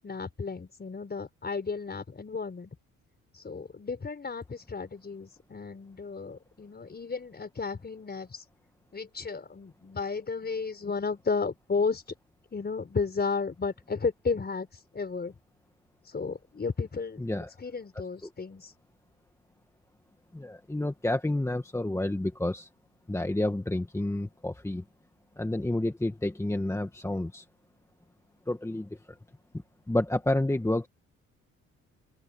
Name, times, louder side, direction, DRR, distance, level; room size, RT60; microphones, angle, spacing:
voice 1, 0.0-2.8 3.4-8.4 8.9-12.0 12.5-14.7 14.9-15.3 16.1-17.2 17.6-18.7, left 4 dB, 35° left, 5.2 m, -33 dB
voice 2, 17.2-17.5 18.2-18.3 20.3-22.7 23.1-24.8 25.4-27.5 28.5-29.0 29.9-30.9, left 1 dB, 10° left, 1.7 m, -29 dB
open air
cardioid pair, 90°, 30 cm